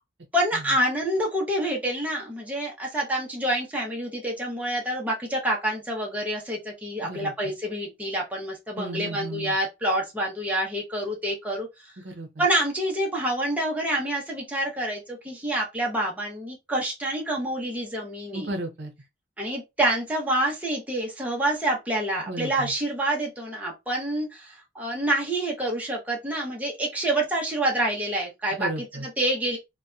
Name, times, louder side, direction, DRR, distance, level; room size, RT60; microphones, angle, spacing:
voice 1, 0.3-11.9 12.4-18.5 19.4-28.7 29.0-29.6, right 1 dB, 10° right, 0.6 m, -27 dB
voice 2, 7.0-7.3 8.8-9.6 12.0-12.5 18.3-18.9 22.3-22.7 28.6-29.1, right 2 dB, 60° right, 0.6 m, -34 dB
2.6 x 2.2 x 2.3 m
head